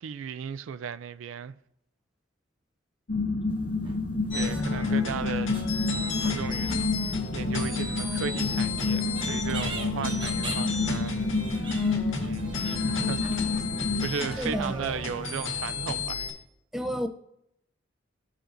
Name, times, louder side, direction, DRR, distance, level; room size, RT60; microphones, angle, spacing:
voice 1, 0.0-1.5 4.3-5.5 6.2-6.7 7.0-11.8 12.2-13.6 14.0-16.3, right 7 dB, 80° right, 0.3 m, -36 dB
sound 1, 3.1-14.1, left 3 dB, 50° left, 0.6 m, -29 dB
sound 2, 3.5-4.0 4.3-7.3 7.6-15.6 16.1-16.2, right 3 dB, 25° right, 0.9 m, -44 dB
sound 3, 4.3-16.3, left 4 dB, 85° left, 1.7 m, -34 dB
voice 2, 14.4-14.9 16.7-17.1, equal, ahead, 0.4 m, -30 dB
13.5 x 5.0 x 2.5 m
head